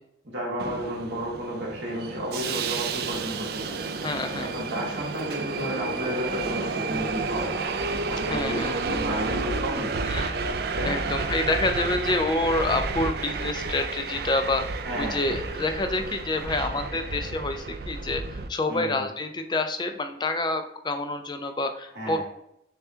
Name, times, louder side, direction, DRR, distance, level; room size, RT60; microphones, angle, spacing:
voice 1, 0.2-3.8 4.4-7.5 8.0-10.0 10.7-11.0 14.8-15.4 18.7-19.0 21.9-22.2, equal, 70° right, -3 dB, 1.5 m, -32 dB
Subway metro underground, 0.6-18.5, right 4 dB, 55° right, 0.3 m, -31 dB
voice 2, 4.0-4.5 8.3-8.7 10.0-10.6 10.8-22.2, left 2 dB, 25° left, 6 dB, 0.4 m, -28 dB
6.8 x 2.3 x 2.7 m, 0.79 s
head